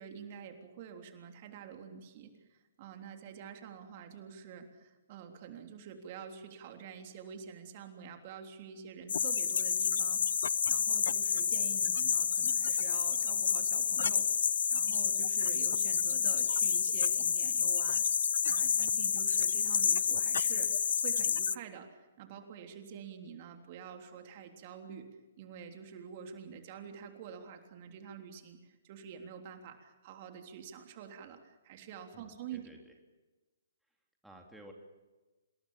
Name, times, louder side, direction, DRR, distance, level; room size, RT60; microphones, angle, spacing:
voice 1, 0.0-10.3 10.7-14.3 14.7-18.0 18.5-25.1 25.4-32.6, right 7 dB, 40° right, 5 dB, 3.5 m, -48 dB
sound 1, 9.1-21.5, left 7 dB, 65° left, 0.8 m, -29 dB
voice 2, 32.1-32.9 34.2-34.7, right 1 dB, ahead, 0 dB, 3.2 m, -54 dB
27.0 x 21.0 x 7.4 m, 1.2 s
hypercardioid pair, 140°, 0 cm